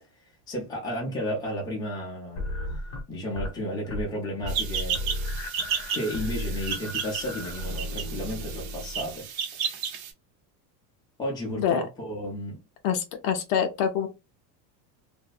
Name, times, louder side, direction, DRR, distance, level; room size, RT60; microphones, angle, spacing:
voice 1, 0.5-2.5 3.1-5.0 5.9-9.3 9.5-9.8 11.2-12.6, equal, 10° left, 0.6 m, -33 dB
sound 1, 2.4-3.6 3.8-4.2 4.4-9.2, left 1 dB, 30° left, 0.9 m, -34 dB
sound 2, 4.5-10.1, right 7 dB, 55° right, 0.7 m, -33 dB
voice 2, 11.5-11.9 12.8-14.1, left 8 dB, 55° left, 0.6 m, -25 dB
2.6 x 2.1 x 2.4 m
supercardioid pair, 160°, 50 cm